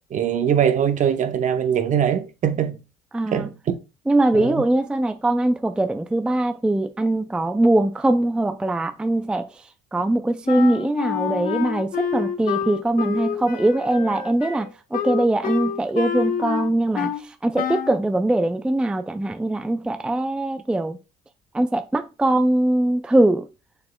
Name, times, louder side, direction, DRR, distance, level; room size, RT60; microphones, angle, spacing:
voice 1, 0.1-2.8 3.3-3.7 4.3-4.6, right 8 dB, 45° right, 0.8 m, -22 dB
voice 2, 3.1-3.5 4.1-9.6 9.9-21.0 21.5-23.5, right 1 dB, 5° right, 0.3 m, -22 dB
Wind instrument woodwind instrument, 10.5-17.2 17.6-18.0, left 8 dB, 55° left, 1.0 m, -28 dB
6.9 x 6.6 x 2.2 m
cardioid pair, 110°, 17 cm